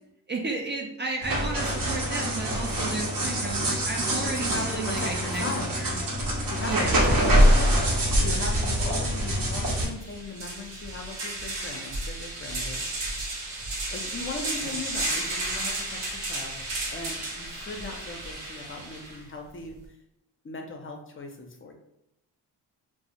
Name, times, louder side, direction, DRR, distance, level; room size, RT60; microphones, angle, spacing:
voice 1, 0.3-5.4 5.8-5.9 6.7-7.1, right 3 dB, 30° right, 0 dB, 0.4 m, -33 dB
sound 1, 1.2-9.8, equal, 55° right, 0.9 m, -24 dB
voice 2, 4.3-5.7 6.5-12.8 13.9-19.8 20.4-21.7, left 3 dB, 30° left, 2 dB, 0.5 m, -38 dB
sound 2, 9.2-9.3 9.6-19.2, right 2 dB, 85° right, 0.8 m, -33 dB
2.3 x 2.0 x 2.8 m, 0.83 s
supercardioid pair, 55°, 41 cm